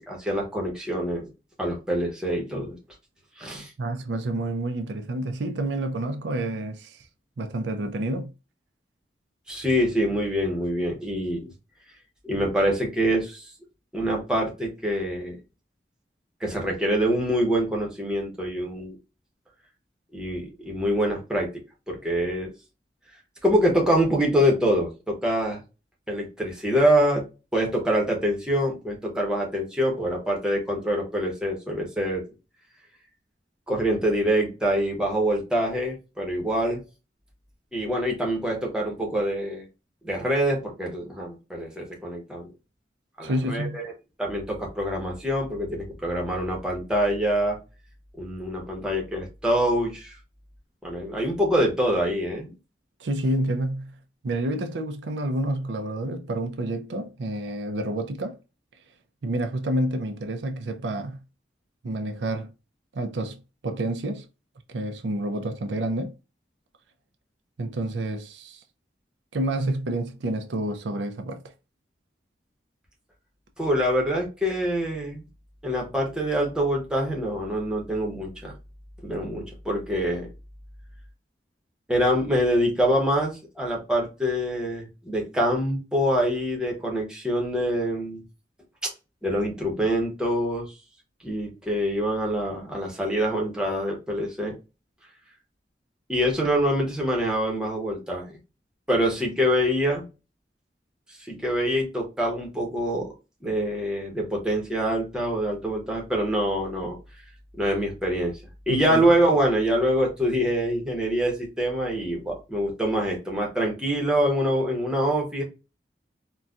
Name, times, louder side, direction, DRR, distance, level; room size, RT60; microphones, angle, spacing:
voice 1, 0.1-1.3 1.6-2.8 3.4-3.7 9.5-11.5 12.2-13.5 13.9-15.4 16.4-19.0 20.1-21.5 21.9-22.5 23.4-25.6 26.1-27.2 27.5-32.2 33.7-36.8 37.7-39.7 40.0-42.5 43.2-43.9 44.2-47.6 48.2-50.2 50.8-52.5 73.6-75.2 75.6-78.5 79.0-80.3 81.9-88.2 88.8-88.9 89.2-90.7 91.2-94.5 96.1-98.4 98.9-100.0 101.2-103.1 103.4-107.0 107.6-108.4 108.7-115.4, equal, 5° right, 0.9 m, -25 dB
voice 2, 3.5-7.0 7.4-8.3 43.2-43.8 53.0-53.9 54.2-58.4 59.2-61.2 61.8-62.5 62.9-64.2 64.7-66.1 67.6-68.6 69.3-71.4 108.7-109.0, right 1 dB, 80° right, 0.5 m, -29 dB
4.0 x 2.2 x 2.4 m
head